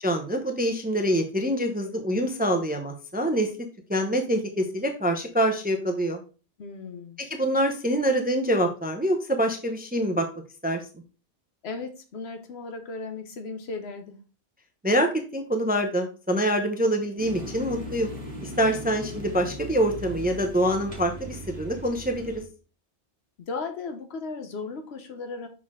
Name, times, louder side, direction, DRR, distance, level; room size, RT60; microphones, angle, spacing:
voice 1, 0.0-3.5 3.9-6.2 7.3-10.3 10.6-10.8 14.8-18.1 18.4-22.4, equal, 10° right, 5 dB, 0.6 m, -25 dB
voice 2, 6.6-7.2 11.6-14.2 23.4-25.5, left 4 dB, 75° left, 6 dB, 1.2 m, -36 dB
sound 1, 17.2-22.4, equal, 30° right, 1.8 m, -38 dB
6.1 x 4.3 x 3.7 m, 0.35 s
omnidirectional pair, 1.1 m